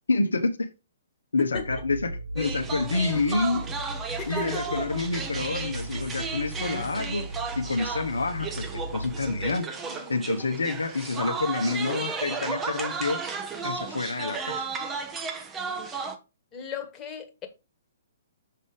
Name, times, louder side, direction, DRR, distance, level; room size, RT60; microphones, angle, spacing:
voice 1, 0.1-0.7 1.3-2.1 2.3-3.6 4.3-7.3 7.5-9.7 10.1-13.2 13.6-14.6, left 3 dB, 70° left, 1.0 m, -28 dB
voice 2, 1.4-1.8 4.2-4.9 16.5-17.5, left 7 dB, 20° left, 1.7 m, -36 dB
sound 1, 1.5-10.5, right 1 dB, 75° right, 1.1 m, -37 dB
sound 2, 2.4-16.2, right 5 dB, 15° right, 1.2 m, -34 dB
6.8 x 5.4 x 5.0 m
figure-of-eight pair, 120°, 0 cm